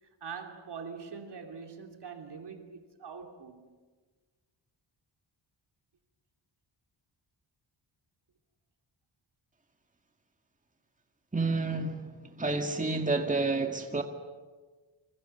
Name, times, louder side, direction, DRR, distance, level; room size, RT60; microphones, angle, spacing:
voice 1, 0.2-3.8, right 6 dB, 60° right, 3.2 m, -43 dB
voice 2, 11.3-14.0, right 3 dB, 15° right, 2.0 m, -30 dB
28.0 x 25.5 x 7.0 m
wide cardioid pair, 95°, 45 cm